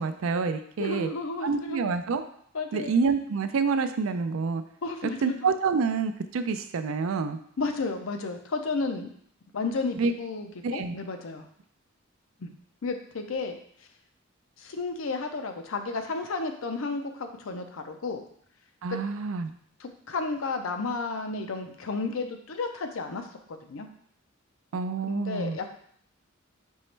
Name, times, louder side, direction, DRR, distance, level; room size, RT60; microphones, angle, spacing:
voice 1, 0.0-1.1 1.4-2.2 2.7-4.6 5.2-7.4 9.9-10.1 10.6-10.9 18.8-19.5 24.7-25.6, right 4 dB, 75° right, 9 dB, 0.4 m, -27 dB
voice 2, 0.8-1.8 2.5-2.9 4.8-5.5 7.6-9.1 9.5-11.5 12.4-12.5 12.8-13.5 14.6-18.3 18.9-19.0 19.8-23.9 25.0-25.7, left 3 dB, 75° left, 6 dB, 0.6 m, -32 dB
5.4 x 3.0 x 3.2 m, 0.63 s
head